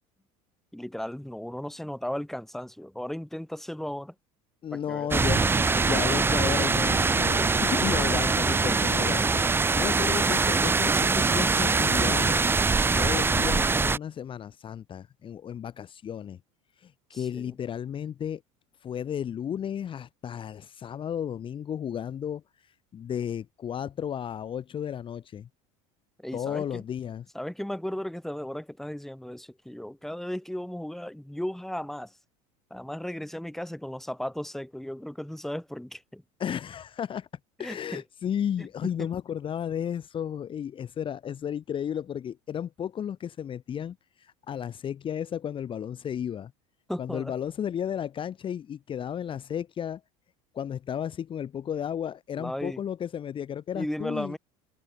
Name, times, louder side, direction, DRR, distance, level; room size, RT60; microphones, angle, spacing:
voice 1, 0.7-4.1 4.7-5.1 9.7-10.3 17.1-17.5 26.2-26.8 27.3-32.1 32.7-36.2 37.6-38.0 38.6-38.7 39.0-39.1 46.9-47.3 52.4-52.8 53.7-54.4, left 1 dB, ahead, 3.1 m, -36 dB
voice 2, 4.6-12.6 13.0-16.4 16.8-18.4 18.8-25.5 26.3-27.2 36.4-37.3 37.6-46.5 47.0-50.0 50.5-54.4, left 9 dB, 30° left, 1.6 m, -33 dB
sound 1, 5.1-14.0, right 4 dB, 15° right, 0.9 m, -23 dB
supercardioid pair, 125°, 17 cm